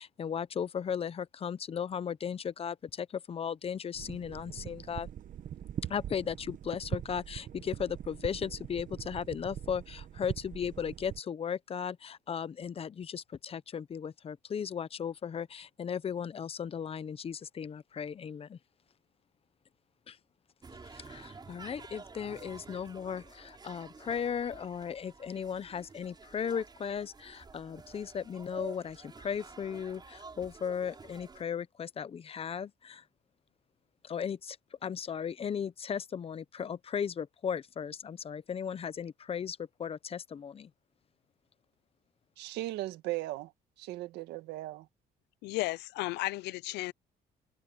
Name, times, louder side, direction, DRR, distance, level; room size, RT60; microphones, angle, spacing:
voice 1, 0.0-5.1 5.9-18.6 20.1-20.2 20.8-33.0 34.0-34.6 34.8-40.7, left 7 dB, 35° left, 0.8 m, -36 dB
sound 1, 3.9-11.2, right 10 dB, 50° right, 1.2 m, -42 dB
sound 2, 20.6-31.4, right 4 dB, 25° right, 5.7 m, -51 dB
voice 2, 42.4-43.5 43.8-44.9, right 17 dB, 90° right, 1.7 m, -37 dB
voice 3, 45.4-46.9, left 20 dB, 85° left, 0.6 m, -34 dB
cardioid pair, 110°, 17 cm